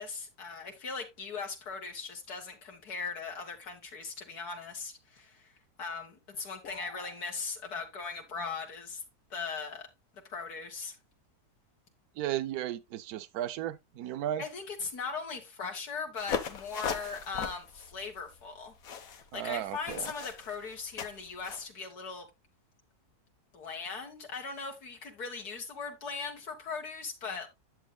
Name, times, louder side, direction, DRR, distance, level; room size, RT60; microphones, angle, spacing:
voice 1, 0.0-5.5 5.8-9.0 9.3-9.9 10.1-11.0 14.4-22.3 23.5-27.5, left 5 dB, 90° left, 2.2 m, -39 dB
sound 1, 6.6-7.2, left 5 dB, 45° left, 1.2 m, -47 dB
voice 2, 12.2-14.4 19.3-20.1, right 12 dB, 80° right, 1.2 m, -35 dB
sound 2, 16.2-21.7, left 7 dB, 70° left, 1.5 m, -39 dB
10.0 x 8.0 x 2.2 m
omnidirectional pair, 1.6 m